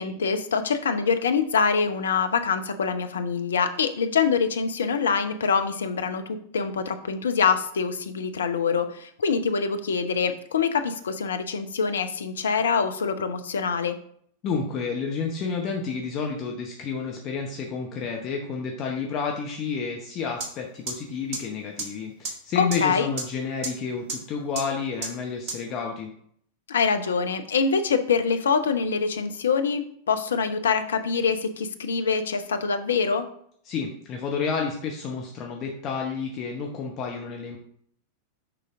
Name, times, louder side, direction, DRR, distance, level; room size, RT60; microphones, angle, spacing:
voice 1, 0.0-14.0 22.6-23.1 26.7-33.3, left 5 dB, 65° left, 9 dB, 0.6 m, -25 dB
voice 2, 14.4-26.1 33.7-37.6, left 5 dB, 35° left, 1 dB, 0.9 m, -30 dB
sound 1, 20.4-20.5 20.9-21.0 21.3-21.4 21.8-21.9 22.2-22.3 22.7-22.8 23.2-23.3 23.6-23.7 24.1-24.2 24.6-24.7 25.0-25.1 25.5-25.6, right 4 dB, 45° right, 1.6 m, -29 dB
6.8 x 5.0 x 3.7 m, 0.64 s
figure-of-eight pair, 90°, 0 cm